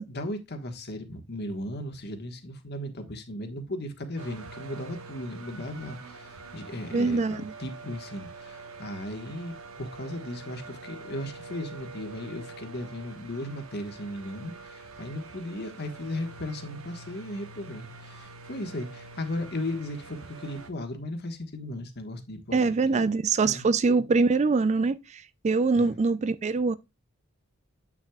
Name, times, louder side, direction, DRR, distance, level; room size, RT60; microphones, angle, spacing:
voice 1, 0.0-23.0 23.4-23.6 25.7-25.9, left 1 dB, 50° left, 1.5 m, -36 dB
sound 1, 4.2-20.7, right 3 dB, 80° right, 1.3 m, -45 dB
voice 2, 6.9-7.5 22.5-26.7, right 4 dB, 35° right, 0.4 m, -24 dB
8.6 x 6.1 x 2.3 m
head